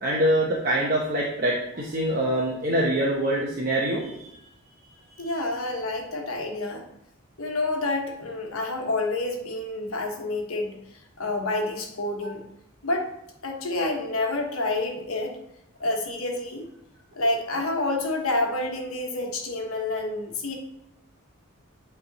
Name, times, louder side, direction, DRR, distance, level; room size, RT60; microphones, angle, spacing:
voice 1, 0.0-4.3 5.1-5.3, right 1 dB, 40° right, -4 dB, 0.9 m, -25 dB
voice 2, 5.2-6.8 7.4-12.4 12.8-13.1 13.4-15.3 15.8-16.7 17.1-20.5, left 2 dB, 80° left, 2 dB, 1.2 m, -28 dB
8.4 x 3.5 x 4.1 m, 0.80 s
head